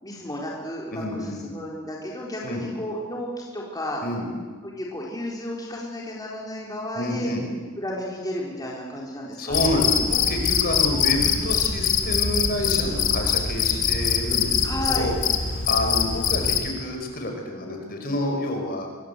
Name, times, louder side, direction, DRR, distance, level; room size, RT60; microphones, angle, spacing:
voice 1, 0.0-4.0 4.6-7.3 7.8-9.7 14.6-15.1, left 1 dB, 20° left, -3 dB, 4.2 m, -33 dB
voice 2, 0.9-1.4 2.4-2.7 4.0-4.3 6.9-7.4 9.4-15.2 15.5-18.9, left 1 dB, 45° left, 3 dB, 5.3 m, -28 dB
Cricket, 9.5-16.7, left 7 dB, 65° left, 2.6 m, -23 dB
26.0 x 22.0 x 8.2 m, 1.5 s
head